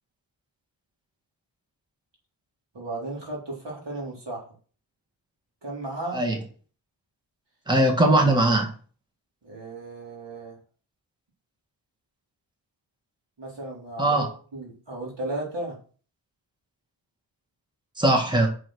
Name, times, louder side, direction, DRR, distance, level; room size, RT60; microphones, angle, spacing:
voice 1, 2.7-4.5 5.6-6.2 9.4-10.6 13.4-15.8, right 2 dB, 65° right, -3 dB, 3.9 m, -35 dB
voice 2, 7.7-8.7 14.0-14.3 18.0-18.5, right 1 dB, 10° right, 2 dB, 1.8 m, -20 dB
6.3 x 6.1 x 6.3 m, 0.42 s
wide cardioid pair, 80°, 46 cm